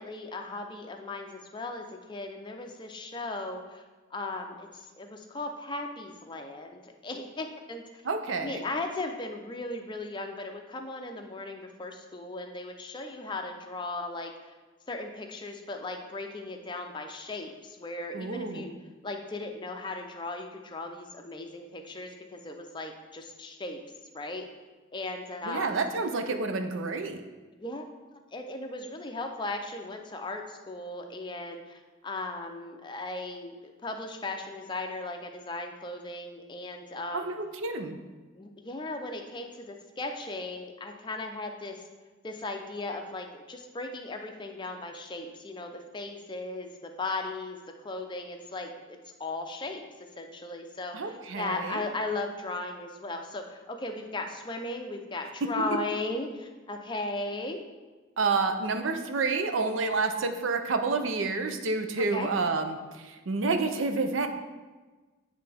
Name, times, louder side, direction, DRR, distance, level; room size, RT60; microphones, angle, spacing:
voice 1, 0.0-3.8 4.1-4.7 5.0-7.8 8.4-14.3 14.9-18.7 19.0-23.8 24.1-24.4 24.9-25.8 27.5-27.8 28.3-31.6 32.0-33.5 33.8-37.3 38.4-41.8 42.2-47.6 47.8-49.8 50.2-57.6 62.1-62.3, left 2 dB, 25° left, 4 dB, 0.5 m, -37 dB
voice 2, 8.0-8.6 18.1-18.7 25.4-27.2 37.1-38.0 50.9-51.8 55.4-55.5 58.2-64.3, right 3 dB, 80° right, 7 dB, 0.6 m, -29 dB
9.6 x 3.4 x 3.4 m, 1.3 s
head